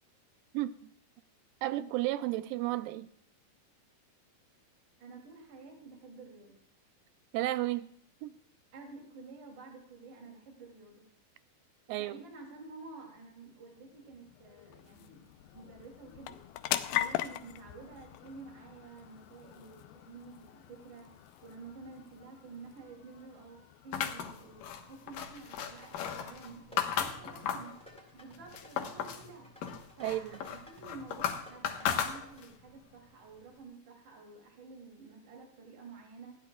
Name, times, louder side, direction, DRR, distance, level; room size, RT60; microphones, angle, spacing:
voice 1, 1.6-3.1 7.3-7.9 8.2-8.3 11.9-12.2 30.0-30.4, right 15 dB, 80° right, 13 dB, 2.1 m, -32 dB
voice 2, 5.0-6.5 8.7-11.0 12.0-15.2 15.5-16.4 17.0-23.6 23.8-27.7 28.1-29.5 30.0-36.4, right 3 dB, 55° right, 0 dB, 4.2 m, -50 dB
sound 1, 13.3-28.1, left 13 dB, 85° left, 2.6 m, -42 dB
sound 2, 23.9-27.8 28.2-29.3 29.6-32.6, left 8 dB, 70° left, 2.7 m, -35 dB
sound 3, 25.6-32.4, left 1 dB, ahead, 3.7 m, -56 dB
19.5 x 14.5 x 2.4 m, 0.67 s
omnidirectional pair, 4.3 m